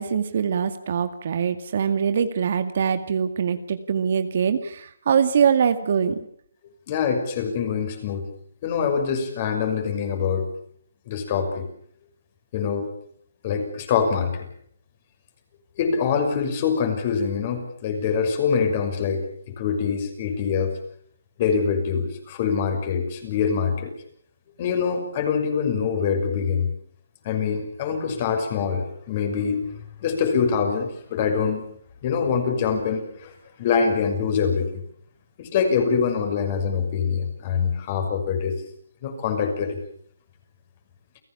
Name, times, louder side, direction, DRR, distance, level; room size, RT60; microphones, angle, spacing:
voice 1, 0.0-6.2, right 7 dB, 50° right, 10 dB, 2.1 m, -23 dB
voice 2, 6.9-8.3 8.6-10.5 11.1-11.7 12.5-12.9 13.4-14.5 15.8-19.2 19.6-20.7 21.4-23.9 24.6-26.7 27.2-29.6 30.0-31.6 32.0-33.3 33.6-34.8 35.4-38.5 39.0-39.8, left 6 dB, 35° left, 5 dB, 6.2 m, -24 dB
29.5 x 16.5 x 7.1 m, 0.65 s
hypercardioid pair, 155°, 0 cm